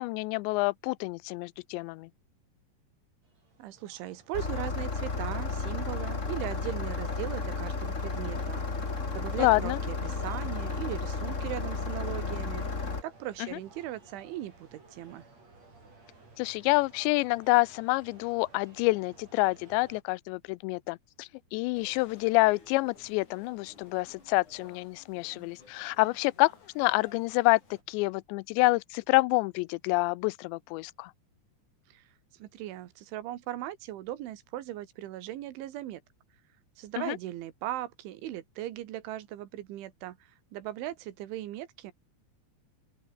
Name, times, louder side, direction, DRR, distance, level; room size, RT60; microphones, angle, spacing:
voice 1, 0.0-2.1 9.4-9.8 13.5-13.6 16.4-27.6 27.9-31.1 37.0-37.2, left 23 dB, 85° left, 2.7 m, -27 dB
sound 1, 3.2-20.0, right 3 dB, 35° right, 8.5 m, -56 dB
voice 2, 3.6-8.6 9.1-12.7 13.0-15.3 31.9-32.0 32.4-36.0 36.8-41.9, right 13 dB, 90° right, 4.1 m, -38 dB
Engine starting, 4.3-13.0, left 4 dB, 25° left, 1.8 m, -33 dB
sound 2, 21.7-27.8, left 4 dB, 40° left, 7.3 m, -56 dB
open air
omnidirectional pair, 5.3 m